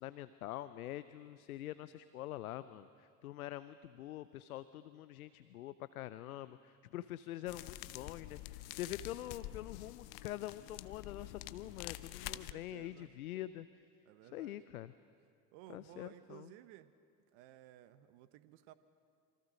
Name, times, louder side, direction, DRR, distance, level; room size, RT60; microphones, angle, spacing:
voice 1, 0.0-13.7 14.3-14.9 15.7-16.5, left 13 dB, 80° left, 14 dB, 0.7 m, -45 dB
sound 1, 7.5-12.5, left 16 dB, 60° left, 0.9 m, -47 dB
voice 2, 12.2-13.1 14.0-14.6 15.5-16.9 17.3-18.7, right 14 dB, 65° right, 13 dB, 1.2 m, -57 dB
27.0 x 24.5 x 6.4 m, 2.2 s
hypercardioid pair, 60°, 42 cm